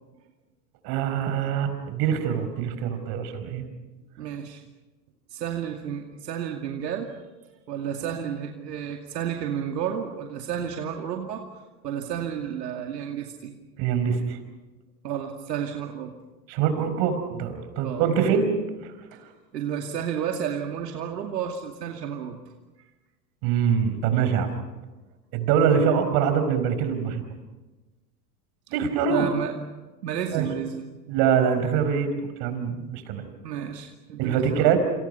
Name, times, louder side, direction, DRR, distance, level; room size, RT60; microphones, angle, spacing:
voice 1, 0.8-3.6 13.8-14.2 16.5-18.5 23.4-24.5 25.3-27.2 28.7-29.3 30.3-30.5 31.1-32.1 32.4-33.3 34.2-34.8, right 7 dB, 50° right, 9 dB, 5.0 m, -24 dB
voice 2, 4.2-4.6 5.3-7.1 7.7-11.5 11.8-13.5 15.0-16.2 17.8-18.0 19.5-22.4 29.1-29.6 30.0-30.8 33.4-34.7, right 8 dB, 80° right, 2 dB, 2.5 m, -31 dB
28.5 x 27.0 x 5.6 m, 1.2 s
hypercardioid pair, 100°, 48 cm